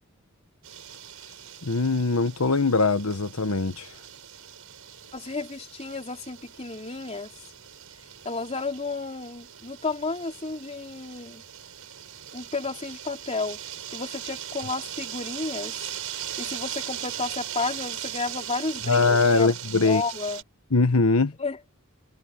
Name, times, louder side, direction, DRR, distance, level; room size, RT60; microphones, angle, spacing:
Nightscapes Asplund ett min, 0.6-20.4, right 10 dB, 70° right, 6.7 m, -39 dB
voice 1, 1.6-3.9 18.9-20.0 20.7-21.3, left 3 dB, 80° left, 1.3 m, -22 dB
voice 2, 5.1-7.3 8.3-11.4 12.3-13.6 13.9-15.8 16.4-20.4 21.4-21.6, left 3 dB, 30° left, 3.4 m, -32 dB
head